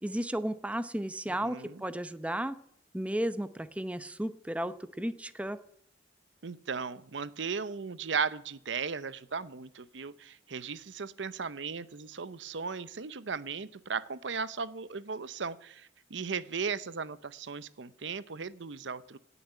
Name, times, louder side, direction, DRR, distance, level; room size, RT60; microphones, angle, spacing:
voice 1, 0.0-2.6 2.9-5.6, right 1 dB, 5° right, 12 dB, 0.7 m, -34 dB
voice 2, 1.4-1.8 6.4-19.2, right 5 dB, 80° right, 16 dB, 0.7 m, -36 dB
18.0 x 7.1 x 9.9 m, 0.69 s
head